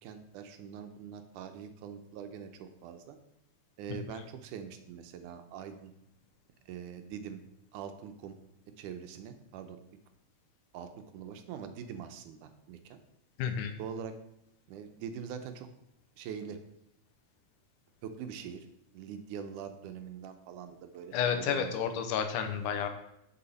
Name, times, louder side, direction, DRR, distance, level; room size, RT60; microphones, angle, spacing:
voice 1, 0.0-3.2 3.8-5.9 6.7-7.4 7.7-8.4 8.8-9.8 10.7-10.9 11.1-13.0 13.8-14.2 14.7-15.7 16.2-16.6 18.0-18.7 18.9-21.9, right 7 dB, 85° right, 8 dB, 2.2 m, -43 dB
voice 2, 13.4-13.7 21.1-22.9, left 7 dB, 85° left, 7 dB, 2.3 m, -31 dB
6.9 x 5.6 x 5.3 m, 0.82 s
omnidirectional pair, 3.6 m